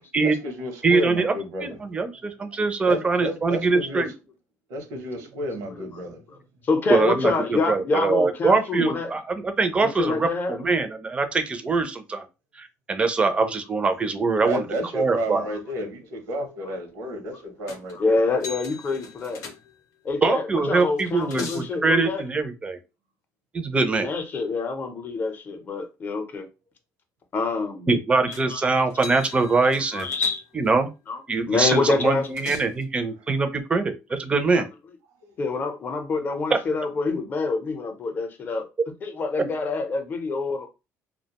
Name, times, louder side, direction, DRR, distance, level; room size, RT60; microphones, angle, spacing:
voice 1, 0.2-1.8 2.0-4.0 4.7-6.4 14.4-18.2, equal, 90° right, 0.8 m, -32 dB
voice 2, 0.8-1.3 1.6-4.1 6.9-12.2 12.6-14.6 14.9-15.4 20.2-22.8 23.5-24.1 27.9-30.1 30.6-30.9 31.3-34.6 36.5-36.6, right 3 dB, 20° right, 0.4 m, -23 dB
voice 3, 6.6-9.1 9.8-10.8 16.7-16.8 17.9-19.4 20.0-22.2 24.0-26.5 27.3-27.9 28.3-28.7 29.5-30.4 31.1-32.3 34.5-35.0 35.4-38.7 39.0-40.7, left 3 dB, 35° left, 0.6 m, -27 dB
sound 1, 17.7-18.0 18.4-20.0 20.8-21.7 28.3-28.6 28.9-30.7 32.0-32.8, left 4 dB, 75° left, 0.6 m, -40 dB
2.3 x 2.1 x 2.8 m
cardioid pair, 135°, 6 cm